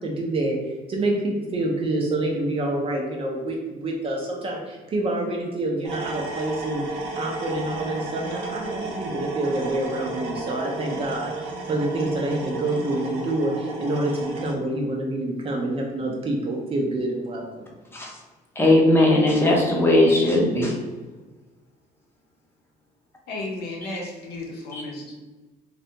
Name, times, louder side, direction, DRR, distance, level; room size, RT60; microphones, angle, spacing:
voice 1, 0.0-17.7, right 2 dB, 35° right, -1 dB, 0.4 m, -27 dB
sound 1, 5.8-14.5, right 2 dB, 85° right, 0.6 m, -32 dB
voice 2, 18.6-20.8, left 1 dB, 15° left, -2 dB, 0.6 m, -18 dB
voice 3, 23.3-25.2, left 2 dB, 70° left, -1 dB, 0.7 m, -34 dB
2.3 x 2.2 x 2.7 m, 1.2 s
cardioid pair, 110°, 17 cm